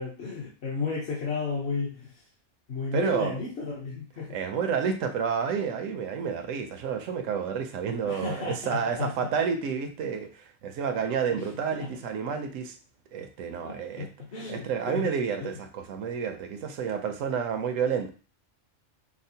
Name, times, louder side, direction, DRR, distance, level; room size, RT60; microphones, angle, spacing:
voice 1, 0.0-2.1 2.7-4.4 8.0-9.1 11.3-11.9 13.6-15.1 15.4-15.6, left 4 dB, 60° left, -5 dB, 1.1 m, -33 dB
voice 2, 2.9-3.4 4.3-12.8 13.1-14.1 14.5-18.1, right 7 dB, 85° right, 7 dB, 1.0 m, -30 dB
5.1 x 2.0 x 2.7 m, 0.36 s
omnidirectional pair, 1.3 m